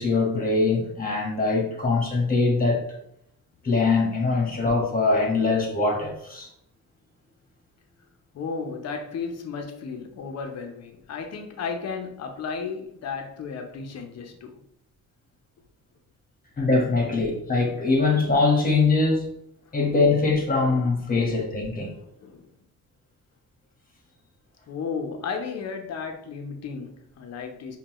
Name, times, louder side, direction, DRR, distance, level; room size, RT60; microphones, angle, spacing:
voice 1, 0.0-2.8 3.6-6.5 16.6-19.3 19.7-21.9, left 3 dB, 30° left, 1.3 m, -22 dB
voice 2, 8.3-14.6 21.1-21.2 22.0-22.5 24.7-27.8, left 5 dB, 55° left, 0.7 m, -34 dB
5.2 x 2.3 x 3.0 m
cardioid pair, 90°, 30 cm